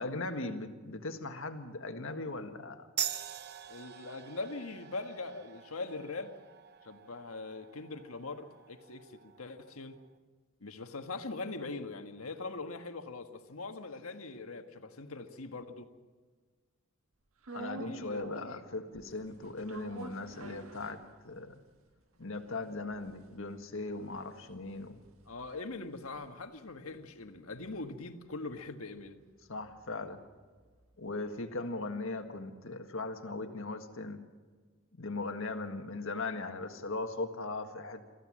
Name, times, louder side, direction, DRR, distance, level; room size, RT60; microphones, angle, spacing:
voice 1, 0.0-2.9 17.5-21.0 21.2-21.6 22.2-25.0 29.5-30.2 31.0-34.2 35.0-38.0, left 2 dB, 65° left, 6 dB, 1.8 m, -38 dB
sound 1, 3.0-10.1, right 10 dB, 50° right, 0.9 m, -43 dB
voice 2, 3.7-6.3 6.8-10.0 10.6-15.9 17.8-18.3 25.3-29.2, left 3 dB, 90° left, 7 dB, 1.5 m, -42 dB
sound 2, 17.4-18.6 18.9-21.5 21.9-22.0 22.2-26.7 27.0-31.1, right 3 dB, 75° right, 1.6 m, -50 dB
23.5 x 15.0 x 7.5 m, 1.4 s
head